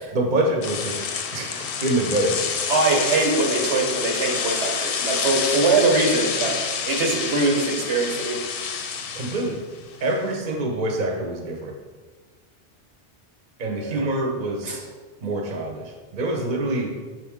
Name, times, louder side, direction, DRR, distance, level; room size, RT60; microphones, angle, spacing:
voice 1, 0.1-1.0 1.3-2.4 9.1-9.6 10.0-11.7 13.6-14.9 15.2-16.9, right 1 dB, 45° right, 1 dB, 0.9 m, -25 dB
sound 1, 0.6-10.4, left 6 dB, 60° left, 0.7 m, -28 dB
voice 2, 2.7-6.6 6.9-8.4 13.8-14.0 14.6-14.8, right 3 dB, 80° right, 1 dB, 1.3 m, -22 dB
6.6 x 4.5 x 3.6 m, 1.4 s
omnidirectional pair, 1.2 m